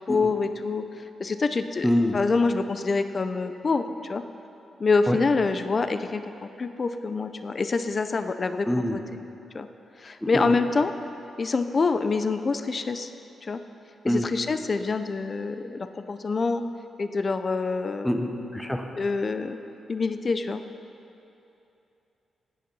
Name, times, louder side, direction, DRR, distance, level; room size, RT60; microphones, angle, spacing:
voice 1, 0.1-1.9 2.1-4.2 4.8-9.0 9.5-9.7 10.0-10.9 11.4-13.1 13.4-13.6 14.1-16.6 17.0-18.1 19.0-19.6 19.9-20.6, left 4 dB, 40° left, 9 dB, 0.5 m, -26 dB
voice 2, 1.8-2.1 5.1-5.2 8.7-9.0 10.2-10.4 14.0-14.2 18.0-18.8, left 1 dB, 5° left, 4 dB, 1.0 m, -25 dB
16.0 x 9.4 x 5.5 m, 2.8 s
cardioid pair, 95°, 0 cm